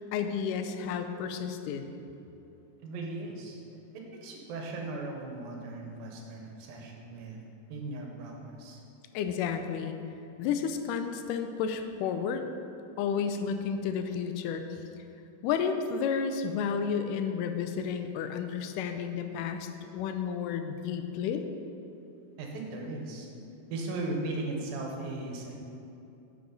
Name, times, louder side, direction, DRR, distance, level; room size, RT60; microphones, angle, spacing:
voice 1, 0.0-1.9 9.1-10.0 10.4-12.5 13.0-14.6 15.4-21.4, left 7 dB, 85° left, 7 dB, 1.9 m, -31 dB
voice 2, 2.8-3.6 3.9-7.4 7.7-8.8 22.4-23.3 23.7-25.6, right 2 dB, 75° right, 0 dB, 2.8 m, -37 dB
9.7 x 6.8 x 3.9 m, 2.8 s
omnidirectional pair, 4.1 m